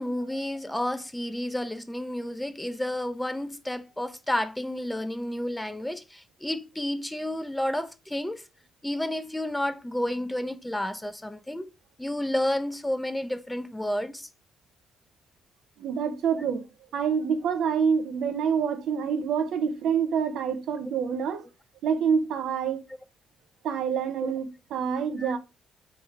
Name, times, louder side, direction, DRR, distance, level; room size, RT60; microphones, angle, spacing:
voice 1, 0.0-8.4 8.8-11.7 12.0-14.3 24.2-24.3 25.2-25.3, left 1 dB, 5° left, 0.4 m, -31 dB
voice 2, 15.8-16.6 16.9-21.5 21.8-22.8 23.6-25.4, right 7 dB, 75° right, 0.6 m, -27 dB
3.6 x 3.5 x 3.0 m
cardioid pair, 90°, 0 cm